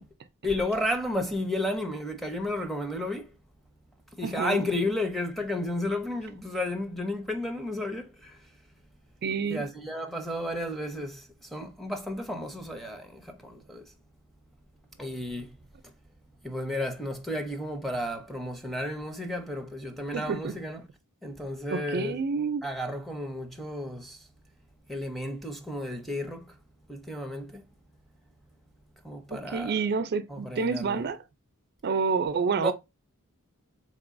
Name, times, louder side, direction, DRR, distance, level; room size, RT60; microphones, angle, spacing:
voice 1, 0.4-3.3 4.1-8.5 9.5-13.9 15.0-15.6 15.8-15.9 16.4-20.8 21.2-22.2 22.6-24.3 24.9-26.6 26.9-27.7 29.0-29.7 30.3-31.0 32.6-32.7, left 1 dB, ahead, 0.6 m, -32 dB
voice 2, 4.2-4.6 9.2-9.7 20.1-20.5 21.7-22.6 29.3-31.2 31.8-32.7, right 5 dB, 50° right, 0.4 m, -28 dB
4.1 x 3.0 x 2.5 m
head